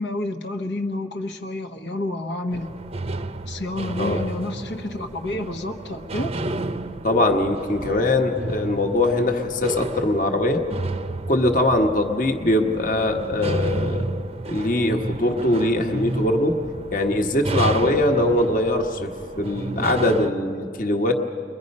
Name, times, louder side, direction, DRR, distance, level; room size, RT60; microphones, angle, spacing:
voice 1, 0.0-2.7 3.5-6.3, left 1 dB, 85° left, 4 dB, 1.3 m, -29 dB
sound 1, 2.5-20.3, right 2 dB, 35° right, 0.6 m, -31 dB
voice 2, 7.0-10.6 11.3-14.1 14.5-16.5 16.9-19.1 19.4-21.1, left 1 dB, 50° left, 4 dB, 1.3 m, -21 dB
30.0 x 22.0 x 5.4 m, 2.4 s
head